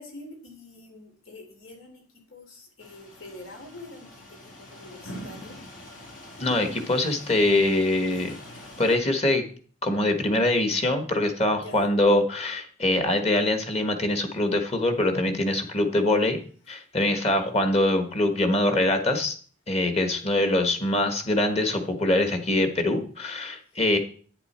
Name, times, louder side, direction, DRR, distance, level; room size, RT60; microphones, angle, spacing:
voice 1, 0.0-2.0 2.3-4.2 4.6-5.6 11.6-11.9 23.8-24.0, left 2 dB, 85° left, 3 dB, 3.4 m, -45 dB
sound 1, 2.8-9.0, left 1 dB, 65° left, 2.6 m, -43 dB
voice 2, 6.4-8.3 8.8-9.4 9.8-16.4 16.7-19.4 19.7-24.0, left 1 dB, 30° left, 7 dB, 1.4 m, -23 dB
11.0 x 9.0 x 4.3 m, 0.42 s
head